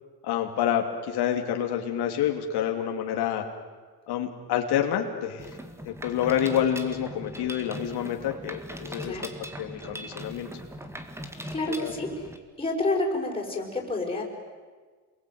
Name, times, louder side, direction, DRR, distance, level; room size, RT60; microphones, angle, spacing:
voice 1, 0.2-3.4 4.1-5.6 5.9-9.2 9.6-10.5 11.7-11.9, left 10 dB, 85° left, 3 dB, 2.7 m, -28 dB
Mechanisms, 5.4-12.4, equal, 5° right, 2.1 m, -40 dB
voice 2, 11.5-12.1 12.6-14.2, left 2 dB, 15° left, -1 dB, 5.8 m, -28 dB
28.0 x 21.5 x 9.4 m, 1.5 s
cardioid pair, 140°, 38 cm